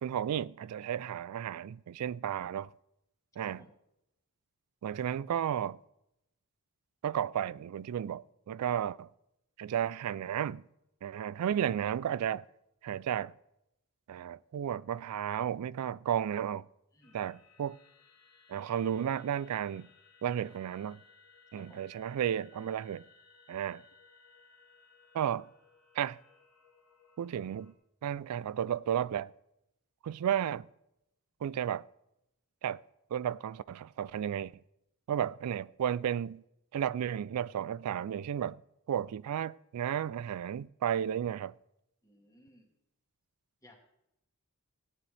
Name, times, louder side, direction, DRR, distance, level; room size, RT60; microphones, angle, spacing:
voice 1, 0.0-2.7 3.4-3.6 4.8-5.8 7.0-9.1 9.6-10.6 11.0-12.5 12.8-13.3 14.1-16.7 17.1-17.8 18.5-19.9 20.2-21.0 21.5-23.0 23.5-23.8 25.1-25.5 26.0-26.2 27.2-27.7 28.0-29.3 30.0-30.7 31.4-31.9 32.6-32.8 33.1-34.5 35.1-36.4 36.7-38.6 38.9-41.5, right 9 dB, 85° right, 0.3 m, -33 dB
voice 2, 3.4-3.8 16.9-17.2 21.5-21.9 42.0-42.7 43.6-43.8, left 1 dB, 15° left, 2.4 m, -59 dB
sound 1, 17.0-27.7, left 4 dB, 85° left, 1.6 m, -62 dB
17.5 x 9.5 x 3.4 m
head